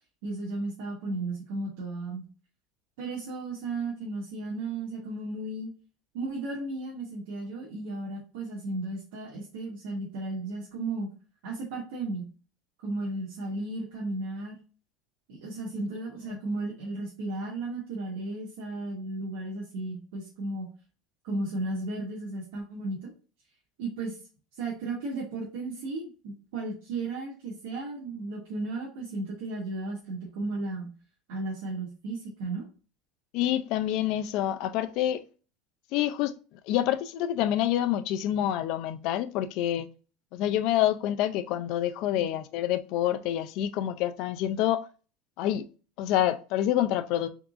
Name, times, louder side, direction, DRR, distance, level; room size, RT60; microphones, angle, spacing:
voice 1, 0.2-2.3 3.0-5.7 6.1-11.1 11.4-12.3 12.8-14.6 15.3-20.7 21.2-23.1 23.8-24.2 24.6-30.9 31.3-32.6 42.1-42.3, right 2 dB, 80° right, 1.2 m, -34 dB
voice 2, 33.3-35.2 35.9-36.3 36.6-39.9 40.3-44.9 45.4-45.7 46.0-47.3, left 12 dB, 55° left, 0.4 m, -27 dB
3.9 x 3.5 x 2.5 m
supercardioid pair, 145°, 0 cm